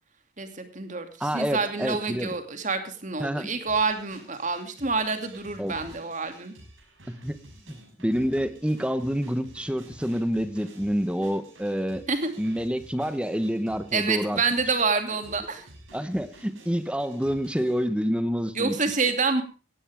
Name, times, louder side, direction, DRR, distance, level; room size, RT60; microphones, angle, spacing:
voice 1, 0.4-6.5 12.1-12.3 13.9-15.7 18.5-19.4, right 4 dB, 35° right, 7 dB, 2.7 m, -27 dB
voice 2, 1.2-2.3 3.2-3.5 5.6-5.7 7.1-7.4 7.7-12.0 12.4-14.4 15.9-18.7, equal, 5° right, 11 dB, 1.1 m, -28 dB
sound 1, 3.7-17.9, right 1 dB, 75° right, 6.5 m, -51 dB
18.0 x 15.0 x 3.6 m, 0.34 s
head